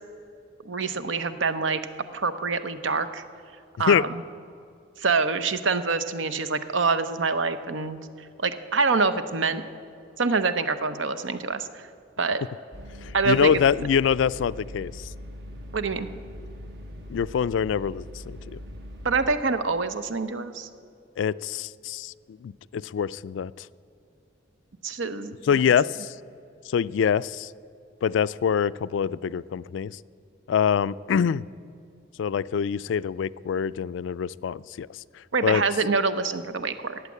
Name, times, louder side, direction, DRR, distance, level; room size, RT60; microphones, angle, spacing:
voice 1, 0.6-1.8 2.1-3.2 3.8-4.2 5.0-8.0 8.4-9.6 10.2-11.9 12.2-12.4 13.1-13.5 15.7-16.1 19.0-20.7 24.8-25.6 35.3-37.0, right 4 dB, 80° right, 11 dB, 0.8 m, -26 dB
sound 1, 12.7-19.3, equal, 60° right, 1.4 m, -41 dB
voice 2, 13.0-15.1 17.1-18.6 21.2-23.7 25.5-26.1 26.7-27.5 28.0-29.9 30.5-31.4 32.2-34.9 35.4-35.6, left 7 dB, 75° left, 18 dB, 0.3 m, -25 dB
14.5 x 9.0 x 8.4 m, 2.5 s
head